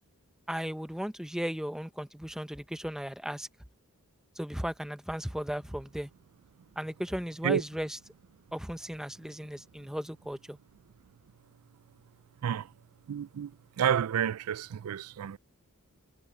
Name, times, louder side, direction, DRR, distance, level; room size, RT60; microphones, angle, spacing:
voice 1, 0.5-3.5 4.4-6.1 6.8-8.0 8.5-10.6, equal, ahead, 0.8 m, -36 dB
voice 2, 13.1-13.5 13.8-15.4, right 9 dB, 80° right, 0.4 m, -29 dB
head